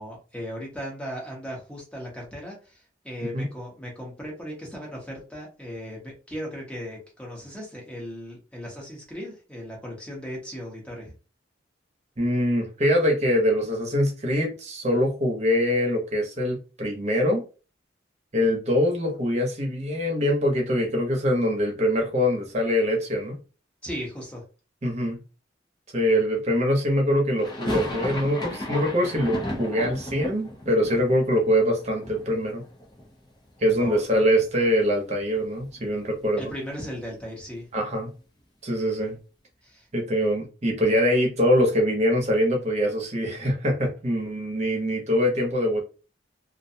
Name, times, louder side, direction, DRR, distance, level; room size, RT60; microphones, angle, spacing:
voice 1, 0.0-11.1 23.8-24.4 33.7-33.9 36.4-37.7 39.6-39.9, equal, 5° left, -2 dB, 0.9 m, -37 dB
voice 2, 12.2-17.4 18.3-23.4 24.8-25.2 25.9-32.6 33.6-36.5 37.7-38.1 38.6-39.2 39.9-45.8, equal, 35° right, 0 dB, 0.8 m, -23 dB
sound 1, 27.4-33.3 33.6-34.4 34.7-34.8 35.1-37.2, left 1 dB, 25° left, 0.5 m, -35 dB
2.4 x 2.2 x 2.7 m, 0.33 s
head